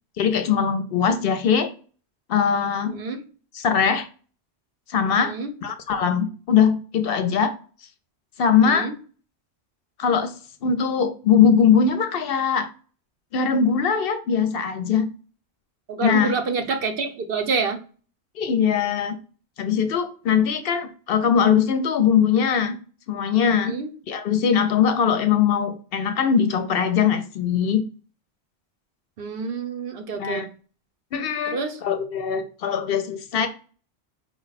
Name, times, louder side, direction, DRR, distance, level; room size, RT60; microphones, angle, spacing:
voice 1, 0.2-1.7 2.3-3.0 3.5-4.1 4.9-5.3 5.6-7.5 8.4-8.9 10.0-10.3 10.6-12.7 13.3-15.1 16.0-16.3 18.4-19.2 19.6-22.8 23.1-23.8 24.1-27.8 30.1-30.5 31.1-33.5, left 7 dB, 65° left, 0.7 m, -21 dB
voice 2, 2.9-3.2 5.1-5.5 8.6-8.9 15.9-17.8 23.6-23.9 29.2-30.5 31.5-31.8, right 4 dB, 65° right, 0.8 m, -27 dB
4.6 x 2.2 x 3.9 m
omnidirectional pair, 1.1 m